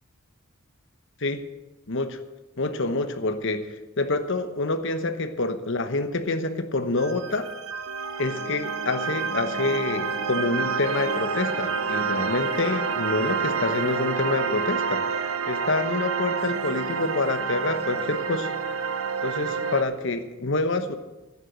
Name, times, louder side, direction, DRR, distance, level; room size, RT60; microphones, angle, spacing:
voice 1, 1.9-2.2 2.6-3.6 4.0-7.5 8.2-15.0 15.5-18.5 19.2-21.0, left 2 dB, 60° left, 8 dB, 1.0 m, -27 dB
sound 1, 7.0-19.8, right 5 dB, 85° right, 1.0 m, -28 dB
11.5 x 10.0 x 8.0 m, 1.1 s
head